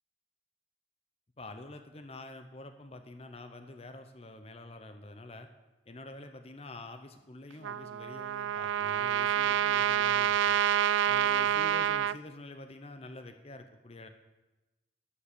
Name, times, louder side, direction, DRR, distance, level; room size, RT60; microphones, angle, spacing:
voice 1, 1.4-5.5 5.9-10.6 11.1-14.1, left 2 dB, 30° left, 7 dB, 0.7 m, -47 dB
Trumpet, 7.6-12.2, right 9 dB, 80° right, 0.3 m, -28 dB
11.5 x 10.0 x 6.8 m, 1.1 s
head